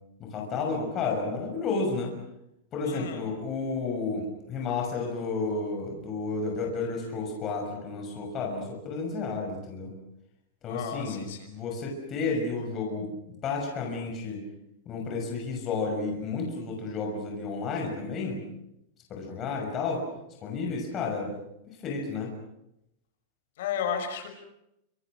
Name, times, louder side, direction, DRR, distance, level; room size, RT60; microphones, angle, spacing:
voice 1, 0.2-2.1 2.7-9.9 10.6-13.1 13.4-14.4 14.9-18.4 19.1-20.0 20.4-21.3 21.8-22.3, left 4 dB, 20° left, 0 dB, 6.2 m, -31 dB
voice 2, 2.8-3.3 10.7-11.5 23.6-24.3, left 7 dB, 60° left, 6 dB, 6.0 m, -33 dB
29.5 x 27.0 x 6.2 m, 0.84 s
supercardioid pair, 175°, 0 cm